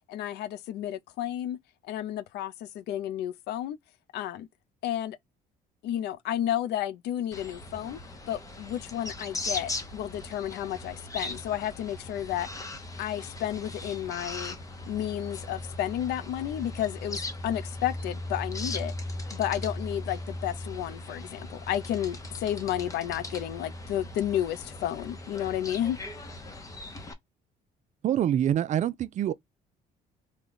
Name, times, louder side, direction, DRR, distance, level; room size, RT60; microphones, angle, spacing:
voice 1, 0.1-1.6 1.9-3.8 4.1-4.5 4.8-5.2 5.8-8.0 8.3-12.5 13.0-14.5 14.9-18.9 19.3-26.0, left 11 dB, 80° left, 0.5 m, -32 dB
sound 1, 7.3-27.1, left 2 dB, 20° left, 0.8 m, -38 dB
voice 2, 28.0-29.3, right 10 dB, 45° right, 0.4 m, -25 dB
3.2 x 2.3 x 3.8 m
cardioid pair, 110°, 17 cm